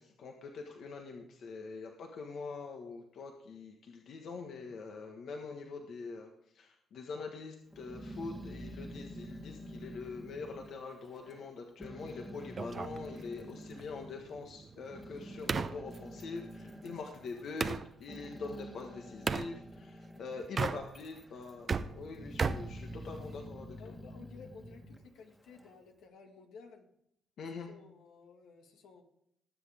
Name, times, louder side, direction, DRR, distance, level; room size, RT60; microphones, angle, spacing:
voice 1, 0.0-23.9 27.4-27.7, left 4 dB, 65° left, 2 dB, 1.5 m, -44 dB
Growling, 7.7-11.5 11.8-14.1 14.7-20.5 20.9-21.6 22.0-25.8, equal, 5° left, 1.6 m, -48 dB
sound 1, 12.6-17.9 19.3-19.5 20.4-21.2 21.5-23.5, right 5 dB, 40° right, 0.7 m, -37 dB
voice 2, 16.8-17.1 23.8-26.9 27.7-29.0, left 5 dB, 85° left, 3 dB, 2.0 m, -54 dB
19.5 x 7.6 x 3.6 m, 0.75 s
cardioid pair, 90°, 0 cm